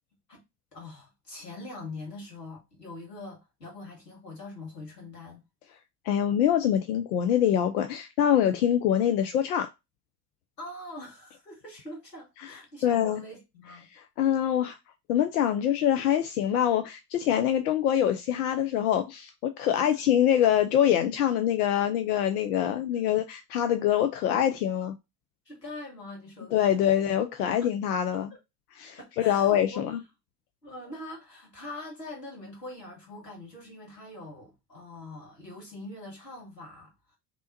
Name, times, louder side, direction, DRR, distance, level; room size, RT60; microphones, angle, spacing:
voice 1, 0.7-5.4 10.6-13.9 19.7-19.9 22.9-23.0 25.4-27.0 27.6-27.7 28.1-28.4 29.0-30.0 30.6-36.9, left 2 dB, 90° left, 1.3 m, -43 dB
voice 2, 6.1-9.7 12.4-12.5 12.8-13.2 14.2-14.8 15.1-24.9 26.5-28.3 28.8-30.0, left 10 dB, 70° left, 0.6 m, -25 dB
3.3 x 2.9 x 2.6 m
figure-of-eight pair, 60°, 48 cm